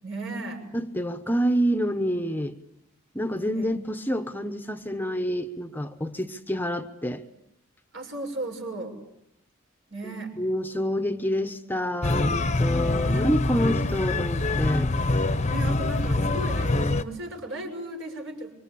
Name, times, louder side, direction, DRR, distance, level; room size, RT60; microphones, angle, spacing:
voice 1, 0.0-0.7 3.5-3.6 7.9-8.9 9.9-10.3 12.7-13.3 15.4-18.5, right 2 dB, 65° right, 2 dB, 6.7 m, -35 dB
voice 2, 0.7-2.5 3.1-7.2 10.0-14.9, equal, 10° left, 8 dB, 1.0 m, -28 dB
sound 1, 12.0-17.0, left 2 dB, 35° left, 1.0 m, -25 dB
26.0 x 24.0 x 8.6 m, 0.81 s
head